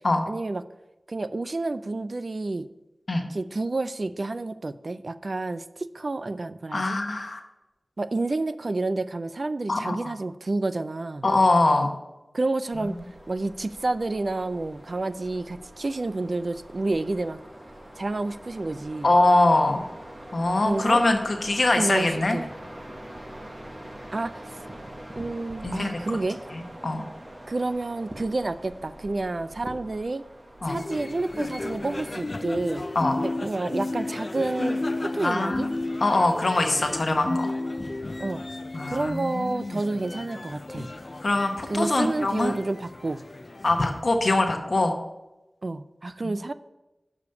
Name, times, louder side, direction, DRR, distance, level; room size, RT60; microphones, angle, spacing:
voice 1, 0.3-0.6 1.1-2.7 3.3-7.0 8.0-11.3 12.3-13.0 13.3-17.4 18.0-19.1 20.6-21.0 21.8-22.5 24.1-24.3 25.2-26.4 27.5-30.2 30.7-32.9 33.4-35.7 38.2-38.4 38.9-40.9 41.7-43.2 45.6-46.5, right 2 dB, 60° right, 13 dB, 0.4 m, -29 dB
voice 2, 6.7-7.4 9.7-10.1 11.2-11.9 19.0-19.8 20.3-22.4 25.6-26.0 26.8-27.0 30.6-30.8 32.9-33.2 35.2-35.7 36.0-37.5 38.7-39.8 41.2-42.6 43.6-44.9, left 2 dB, 65° left, 4 dB, 0.9 m, -23 dB
sound 1, 12.7-32.1, right 1 dB, 45° right, 1.2 m, -44 dB
sound 2, 30.7-44.0, left 2 dB, 45° left, 0.4 m, -33 dB
6.6 x 5.0 x 6.8 m, 1.0 s
wide cardioid pair, 45°, 0 cm